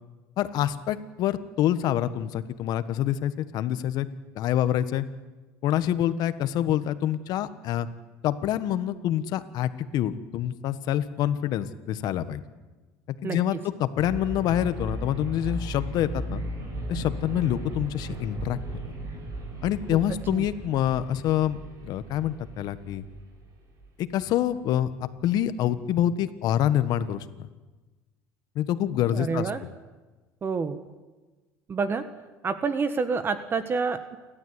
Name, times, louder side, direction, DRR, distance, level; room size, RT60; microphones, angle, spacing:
voice 1, 0.4-4.1 4.3-5.0 5.6-7.9 8.2-12.4 13.2-16.4 16.9-18.6 19.6-23.0 24.0-27.5 28.5-29.5, left 11 dB, 60° left, 12 dB, 1.4 m, -26 dB
sound 1, 14.0-23.9, right 1 dB, 45° right, 6.8 m, -36 dB
voice 2, 29.1-29.6 30.4-30.8 31.7-32.1 32.4-34.2, right 5 dB, 30° right, 11 dB, 1.3 m, -28 dB
29.5 x 13.0 x 9.7 m, 1.2 s
cardioid pair, 120°, 8 cm